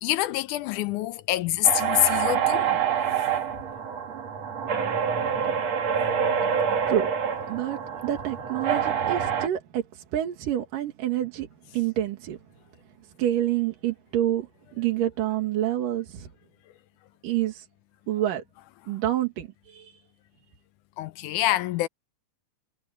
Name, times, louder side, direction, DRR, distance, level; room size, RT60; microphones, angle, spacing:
voice 1, 0.0-2.8 21.0-21.9, left 15 dB, 80° left, 2.2 m, -25 dB
sound 1, 1.6-9.5, right 8 dB, 55° right, 3.3 m, -26 dB
voice 2, 7.5-11.5 11.7-12.4 13.2-16.3 17.2-17.7 18.1-18.4 18.9-20.0, right 12 dB, 85° right, 3.5 m, -28 dB
omnidirectional pair, 3.7 m